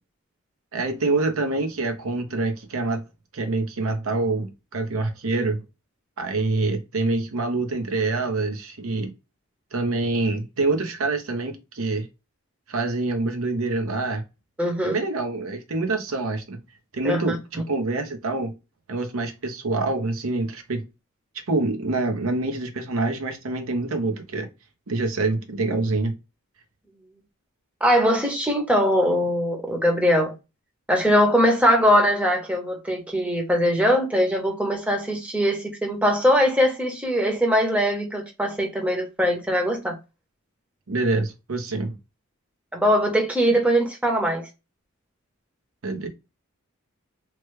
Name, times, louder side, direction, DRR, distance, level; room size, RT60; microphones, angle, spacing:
voice 1, 0.7-3.0 3.3-5.6 6.2-9.1 9.7-12.1 12.7-14.2 14.8-16.6 16.9-18.5 18.9-20.8 21.5-24.5 24.9-26.1 40.9-41.9 45.8-46.1, right 3 dB, 85° right, 0.8 m, -26 dB
voice 2, 14.6-15.0 17.0-17.4 27.8-30.3 30.9-39.9 42.7-44.5, equal, 5° right, 0.7 m, -21 dB
3.1 x 2.2 x 3.1 m
head